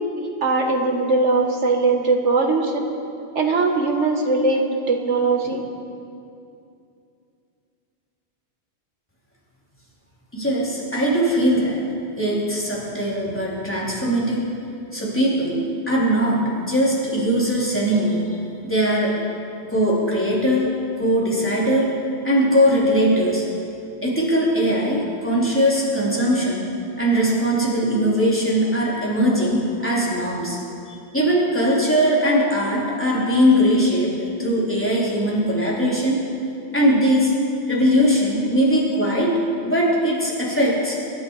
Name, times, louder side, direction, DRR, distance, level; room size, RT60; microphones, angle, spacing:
voice 1, 0.2-2.9 3.4-5.7, right 3 dB, 85° right, 2 dB, 1.8 m, -20 dB
voice 2, 10.3-11.8 12.2-14.4 14.9-15.6 15.9-16.4 16.6-18.2 18.6-19.1 19.7-20.6 21.0-21.9 22.2-23.4 24.0-26.7 27.0-30.6 30.9-36.2 36.7-37.3 37.7-41.0, equal, 10° left, -6 dB, 3.8 m, -20 dB
25.0 x 10.5 x 4.9 m, 2.6 s
omnidirectional pair, 1.2 m